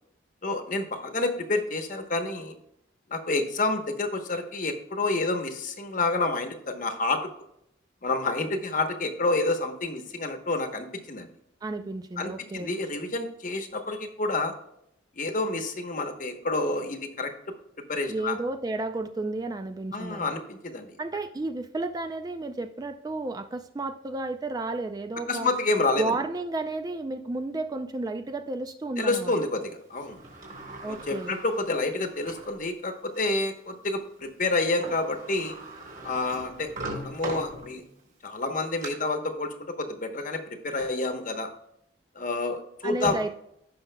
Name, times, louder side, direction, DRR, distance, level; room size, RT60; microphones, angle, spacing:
voice 1, 0.4-2.6 3.1-7.2 8.0-11.3 12.2-14.5 15.2-17.3 17.9-18.3 19.9-20.9 25.3-26.1 29.0-30.2 30.9-35.6 36.0-37.8 38.2-41.5 42.1-43.2, left 2 dB, 45° left, 5 dB, 1.0 m, -29 dB
voice 2, 11.6-12.8 18.1-20.4 21.0-25.5 26.0-29.3 30.8-31.3 42.8-43.3, right 2 dB, 20° right, 8 dB, 0.3 m, -32 dB
Sliding door, 29.9-32.6 33.1-33.2 34.5-34.6 34.8-38.0 38.5-38.9, right 2 dB, 45° right, 2.7 m, -40 dB
15.5 x 5.7 x 2.2 m, 0.78 s
head